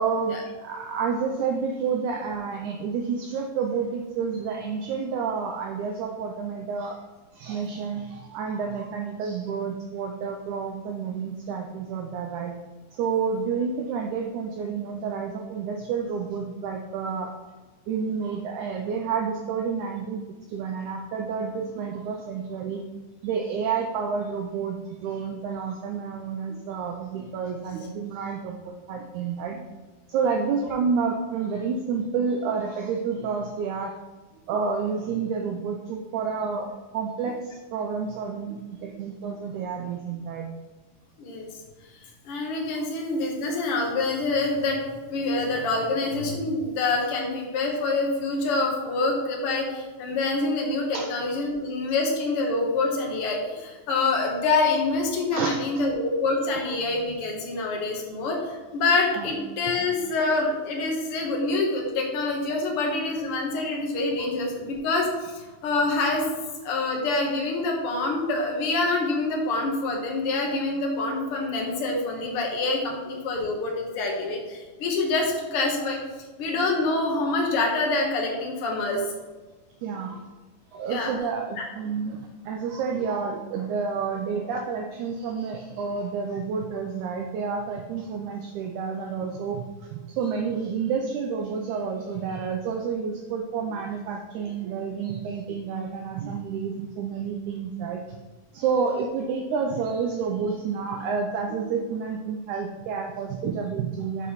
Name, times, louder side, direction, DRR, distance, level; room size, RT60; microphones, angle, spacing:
voice 1, 0.0-7.0 7.3-12.5 12.9-17.3 17.9-20.2 20.5-22.8 23.2-29.7 30.1-33.9 34.5-36.7 36.9-40.5 42.8-42.9 50.9-51.1 55.3-55.9 59.1-59.4 79.8-80.2 80.7-98.0 98.5-104.3, right 5 dB, 85° right, 2 dB, 1.7 m, -29 dB
voice 2, 42.2-44.8 45.1-66.3 66.6-76.0 76.4-79.0 80.9-81.1 81.6-81.7, left 3 dB, 70° left, 0 dB, 1.3 m, -26 dB
8.1 x 3.1 x 5.5 m, 1.3 s
omnidirectional pair, 4.1 m